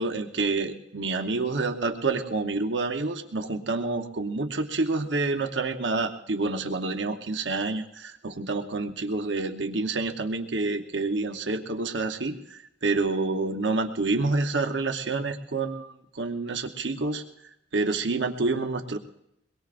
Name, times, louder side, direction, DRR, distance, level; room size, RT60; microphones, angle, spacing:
voice 1, 0.0-17.2 17.7-19.0, right 3 dB, 75° right, 6 dB, 0.9 m, -28 dB
23.0 x 21.0 x 2.5 m, 0.79 s
head